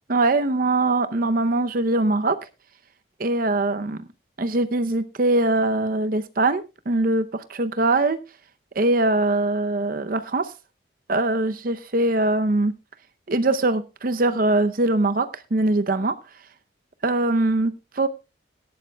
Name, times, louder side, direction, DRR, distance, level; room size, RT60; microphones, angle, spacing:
voice 1, 0.1-2.4 3.2-4.0 4.4-8.2 8.8-10.5 11.1-12.7 13.3-16.2 17.0-18.1, right 2 dB, 45° right, 11 dB, 0.6 m, -22 dB
18.0 x 12.0 x 2.2 m, 0.27 s
head